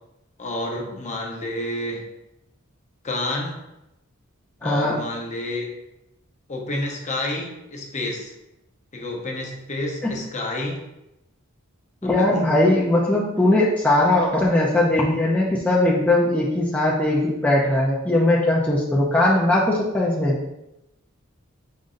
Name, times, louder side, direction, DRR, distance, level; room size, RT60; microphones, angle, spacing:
voice 1, 0.4-2.0 3.0-3.6 4.6-5.7 6.5-8.3 8.9-10.8 12.0-12.4, left 1 dB, 35° left, 0 dB, 0.8 m, -29 dB
voice 2, 4.6-5.0 10.0-10.1 12.0-20.4, left 1 dB, 5° left, -6 dB, 0.6 m, -19 dB
5.2 x 2.6 x 3.7 m, 0.91 s
head